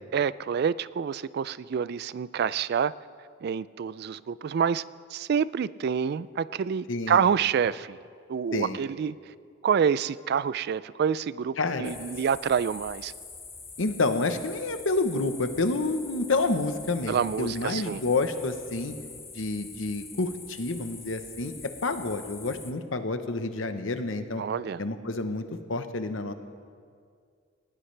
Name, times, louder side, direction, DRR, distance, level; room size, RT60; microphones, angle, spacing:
voice 1, 0.1-2.9 3.4-4.8 5.1-8.0 8.3-9.1 9.6-13.1 17.1-18.0 24.4-24.8, right 7 dB, 50° right, 18 dB, 0.3 m, -27 dB
voice 2, 6.9-7.3 8.5-8.8 11.6-11.9 13.8-18.9 19.3-24.4 24.8-26.3, left 3 dB, 70° left, 8 dB, 1.0 m, -29 dB
sound 1, 11.8-22.7, left 4 dB, 10° left, 0.6 m, -45 dB
19.0 x 18.5 x 3.3 m, 2.2 s
head